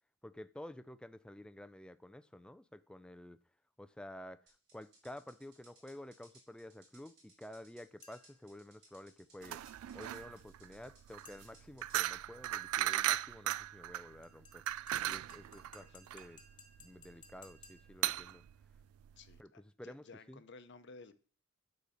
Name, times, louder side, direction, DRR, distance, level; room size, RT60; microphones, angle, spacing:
voice 1, 0.2-3.4 3.8-4.4 4.7-9.6 9.9-14.6 15.1-16.4 16.8-18.4 19.4-20.4, left 1 dB, 5° left, 0.4 m, -51 dB
sound 1, 4.5-12.0, right 2 dB, 50° right, 4.1 m, -65 dB
sound 2, 8.0-8.5 11.2-11.8 14.2-18.1, left 4 dB, 20° left, 1.5 m, -61 dB
sound 3, 9.4-19.4, right 13 dB, 80° right, 0.3 m, -37 dB
voice 2, 19.2-21.1, left 3 dB, 55° left, 0.8 m, -55 dB
9.8 x 4.1 x 6.4 m
head